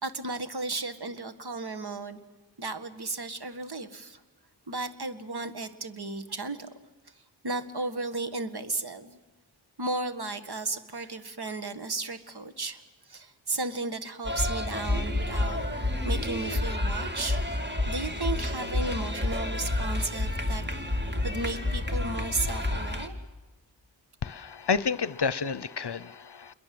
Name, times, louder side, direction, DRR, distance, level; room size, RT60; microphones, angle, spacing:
voice 1, 0.0-2.2 2.6-4.2 4.7-6.7 7.2-9.2 9.8-15.6 16.0-17.4 17.9-21.0 21.2-23.2, right 3 dB, 60° right, 9 dB, 1.8 m, -34 dB
sound 1, 14.2-23.1, left 1 dB, 25° right, 2.6 m, -29 dB
voice 2, 24.2-26.5, left 5 dB, 60° left, 18 dB, 0.8 m, -30 dB
29.0 x 22.5 x 7.8 m, 1.2 s
wide cardioid pair, 55°, 45 cm